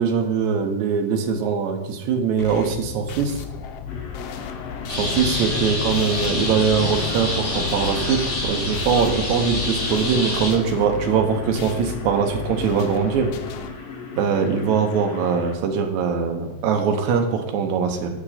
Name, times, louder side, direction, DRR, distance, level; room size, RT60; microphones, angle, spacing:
voice 1, 0.0-3.4 4.9-13.3 14.2-18.1, right 6 dB, 75° right, 3 dB, 2.2 m, -22 dB
sound 1, 2.4-13.7, left 7 dB, 85° left, 1.4 m, -35 dB
sound 2, 3.9-15.6, left 5 dB, 65° left, 1.9 m, -37 dB
sound 3, 4.9-10.5, left 2 dB, 45° left, 3.1 m, -26 dB
8.5 x 5.2 x 4.2 m, 1.0 s
omnidirectional pair, 3.5 m